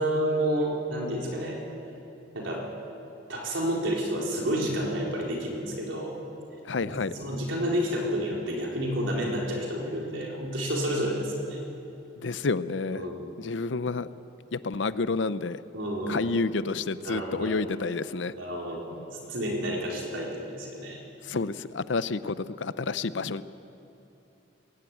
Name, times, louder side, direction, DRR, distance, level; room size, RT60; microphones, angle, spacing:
voice 1, 0.0-1.6 2.3-2.7 3.3-6.2 7.2-11.6 12.9-13.3 15.7-16.4 17.0-17.6 18.4-18.8 19.3-21.0, equal, 85° right, -1 dB, 4.5 m, -30 dB
voice 2, 6.6-7.1 12.2-13.1 13.4-14.1 14.5-15.6 16.1-18.3 21.2-23.4, left 3 dB, 70° left, 15 dB, 0.6 m, -29 dB
21.5 x 16.0 x 9.2 m, 3.0 s
head